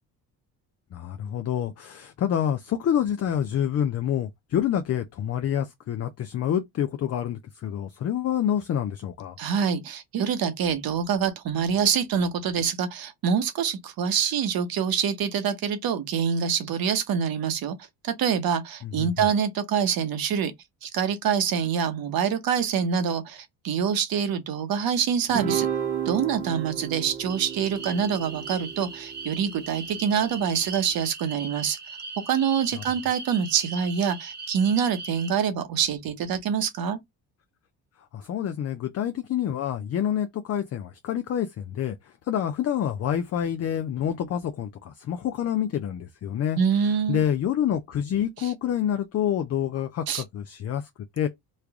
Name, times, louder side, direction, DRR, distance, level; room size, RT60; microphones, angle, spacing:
voice 1, 0.9-9.4 18.8-19.1 32.7-32.8 38.1-42.0 42.2-46.6 47.1-50.8 51.2-51.3, left 9 dB, 40° left, 0.5 m, -27 dB
voice 2, 9.4-17.8 18.0-20.5 20.8-25.7 26.0-31.8 32.3-37.0 46.6-47.2 48.4-48.5 50.1-50.2, right 7 dB, 60° right, 0.9 m, -25 dB
Guitar, 25.3-29.9, right 9 dB, 85° right, 1.2 m, -32 dB
sound 1, 27.3-35.3, right 4 dB, 25° right, 0.9 m, -40 dB
3.2 x 2.4 x 3.5 m
cardioid pair, 90°, 41 cm